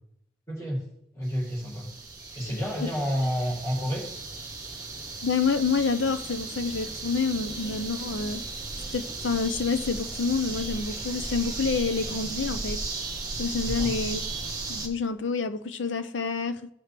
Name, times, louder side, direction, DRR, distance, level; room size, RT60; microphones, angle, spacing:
voice 1, 0.5-0.9 1.1-1.9 2.3-4.0 13.7-13.9, equal, 15° left, 2.5 m, -29 dB
sound 1, 1.2-14.9, right 3 dB, 20° right, 1.3 m, -36 dB
voice 2, 5.2-8.4 8.9-12.8 13.4-14.2 14.7-16.7, left 5 dB, 80° left, 0.6 m, -28 dB
16.0 x 5.8 x 3.4 m
head